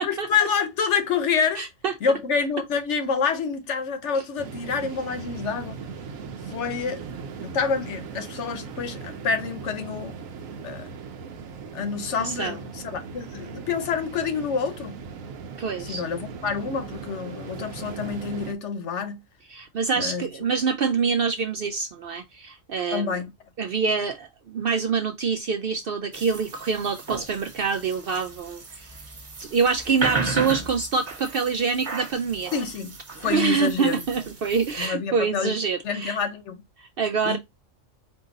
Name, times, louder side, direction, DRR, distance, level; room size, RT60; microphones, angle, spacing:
voice 1, 0.0-1.6 2.0-5.8 6.5-10.1 10.6-10.9 11.7-15.0 15.8-19.2 19.9-20.3 22.9-23.3 32.5-32.9 33.2-34.0 34.8-35.6 35.8-36.6 37.2-37.4, left 5 dB, 65° left, 1.0 m, -27 dB
voice 2, 1.6-1.9 4.1-4.2 12.2-12.6 15.6-16.0 19.5-23.2 23.6-28.9 29.5-32.5 33.2-36.2 36.8-37.4, right 5 dB, 60° right, 0.6 m, -26 dB
sound 1, 4.4-18.5, right 5 dB, 85° right, 1.1 m, -38 dB
sound 2, 26.1-34.9, right 3 dB, 40° right, 1.1 m, -34 dB
4.5 x 2.7 x 3.7 m
omnidirectional pair, 1.4 m